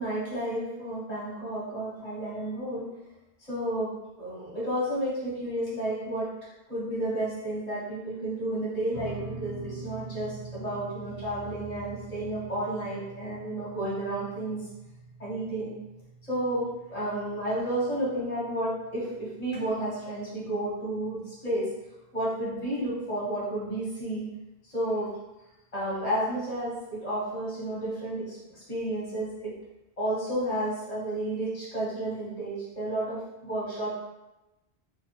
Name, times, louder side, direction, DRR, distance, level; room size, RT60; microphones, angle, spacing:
voice 1, 0.0-2.9 3.5-6.3 6.7-14.7 15.2-15.7 16.3-21.7 22.1-24.2 24.6-25.2 25.7-29.5 30.0-33.9, right 1 dB, 40° left, -9 dB, 1.2 m, -31 dB
sound 1, 8.9-21.4, right 3 dB, 50° right, 1.1 m, -45 dB
2.9 x 2.3 x 2.8 m, 0.97 s
omnidirectional pair, 1.1 m